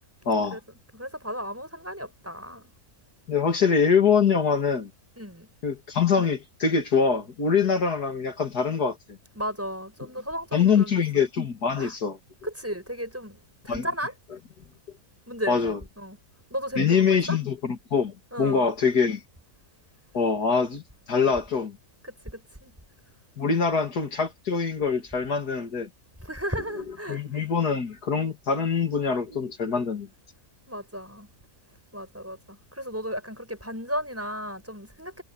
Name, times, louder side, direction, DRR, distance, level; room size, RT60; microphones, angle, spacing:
voice 1, 0.3-0.6 3.3-4.9 5.6-9.2 10.5-12.2 13.7-13.9 15.5-15.8 16.8-19.2 20.1-20.8 21.1-21.8 23.4-25.9 27.1-30.1, left 6 dB, 75° left, 2.9 m, -24 dB
voice 2, 0.9-2.7 5.2-5.5 9.4-11.0 11.8-11.9 12.4-14.1 15.3-16.2 16.5-17.4 18.3-18.7 22.0-22.7 26.2-27.2 30.7-31.3 31.9-35.2, equal, 10° right, 7.0 m, -34 dB
omnidirectional pair, 1.7 m